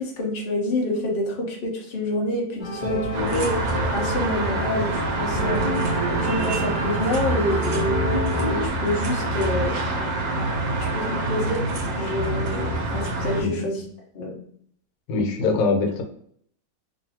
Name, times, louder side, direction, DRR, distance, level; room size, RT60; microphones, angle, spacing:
voice 1, 0.0-3.5 3.9-5.6 6.1-8.0 8.5-9.8 10.7-13.8 14.1-14.4 15.5-15.6, left 1 dB, 50° left, -1 dB, 0.6 m, -27 dB
sound 1, 2.6-8.7, equal, 15° left, 1.2 m, -28 dB
sound 2, 3.1-13.4, right 2 dB, 75° right, 1.2 m, -26 dB
voice 2, 13.3-13.7 15.1-16.0, left 3 dB, 90° left, 3 dB, 1.4 m, -23 dB
3.0 x 2.5 x 2.7 m, 0.64 s
omnidirectional pair, 2.0 m